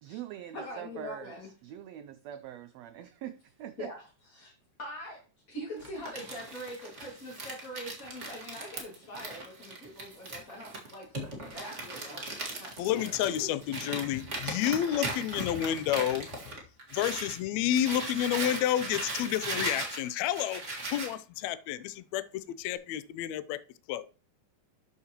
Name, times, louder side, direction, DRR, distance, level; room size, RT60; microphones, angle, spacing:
voice 1, 0.0-1.3 1.6-3.9, right 11 dB, 90° right, 1.5 m, -43 dB
voice 2, 0.5-1.5 3.8-4.0 4.3-4.5 4.8-5.2 5.5-12.2 12.6-13.1 13.4-13.5, equal, 30° left, 2.1 m, -43 dB
Crumpling crinkling, 5.8-17.4 17.7-21.1, right 2 dB, 30° right, 1.5 m, -38 dB
voice 3, 12.8-16.3 16.9-23.6 23.9-24.0, left 11 dB, 80° left, 1.6 m, -30 dB
12.5 x 5.7 x 2.9 m
omnidirectional pair, 3.6 m